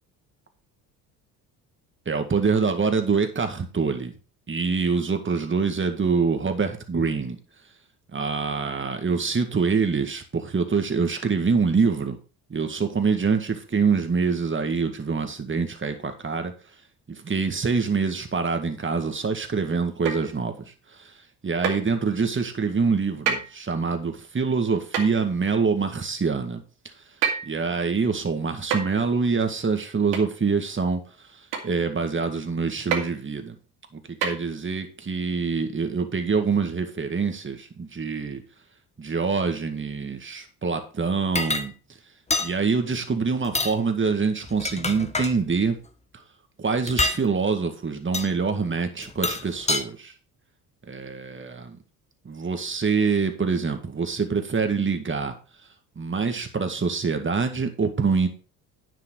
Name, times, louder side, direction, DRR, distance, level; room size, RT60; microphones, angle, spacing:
voice 1, 2.1-4.1 4.5-7.4 8.1-12.2 12.5-16.5 17.1-20.6 21.0-21.1 21.4-26.6 27.5-31.0 31.6-33.6 33.9-38.4 39.0-41.7 42.4-45.8 46.6-50.1 50.9-51.8 52.3-55.3 56.0-58.3, right 5 dB, 25° right, 7 dB, 2.0 m, -25 dB
sound 1, 20.1-20.4 21.6-21.9 23.3-23.5 24.9-25.2 27.2-27.6 28.7-29.0 30.1-30.3 31.5-31.7 32.9-33.1 34.2-34.3, right 7 dB, 70° right, 2.3 m, -26 dB
sound 2, 41.4-41.7 42.3-42.5 43.4-43.8 44.4-45.3 46.9-47.2 48.1-48.3 49.0-49.8, left 2 dB, 15° left, 1.2 m, -26 dB
9.8 x 6.4 x 4.8 m, 0.36 s
hypercardioid pair, 55°, 47 cm